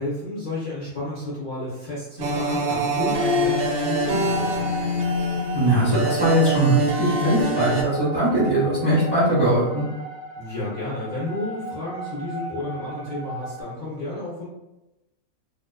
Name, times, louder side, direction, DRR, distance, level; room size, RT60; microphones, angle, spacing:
voice 1, 0.0-5.1 10.4-14.5, left 1 dB, 55° left, -8 dB, 0.5 m, -32 dB
sound 1, 2.2-7.8, equal, 65° right, 0.7 m, -24 dB
sound 2, 4.1-13.6, right 1 dB, 35° left, 0.9 m, -35 dB
voice 2, 5.5-9.8, right 1 dB, 40° right, -9 dB, 0.3 m, -20 dB
2.4 x 2.3 x 2.2 m, 0.99 s
omnidirectional pair, 1.6 m